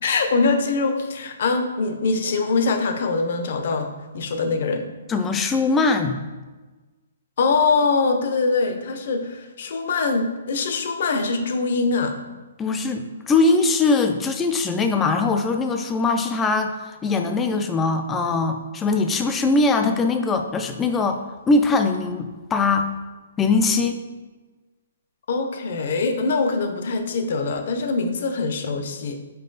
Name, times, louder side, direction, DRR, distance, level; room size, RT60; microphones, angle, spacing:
voice 1, 0.0-3.9 4.1-4.9 7.4-12.2 25.3-29.2, left 4 dB, 40° left, 7 dB, 0.7 m, -23 dB
voice 2, 5.1-6.2 12.6-22.9 23.4-24.0, left 3 dB, 10° left, 6 dB, 0.3 m, -21 dB
5.4 x 4.5 x 3.9 m, 1.2 s
hypercardioid pair, 180°, 0 cm